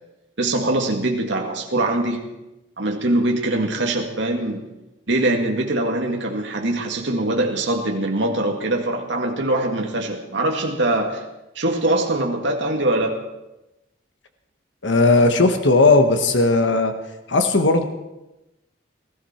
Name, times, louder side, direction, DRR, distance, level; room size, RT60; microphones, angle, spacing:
voice 1, 0.4-2.2 2.8-4.6 5.1-11.2 11.6-13.2, right 1 dB, 70° right, 1 dB, 1.9 m, -22 dB
voice 2, 14.8-17.0 17.3-17.8, left 3 dB, 70° left, 6 dB, 1.2 m, -16 dB
19.0 x 14.0 x 4.4 m, 0.96 s
head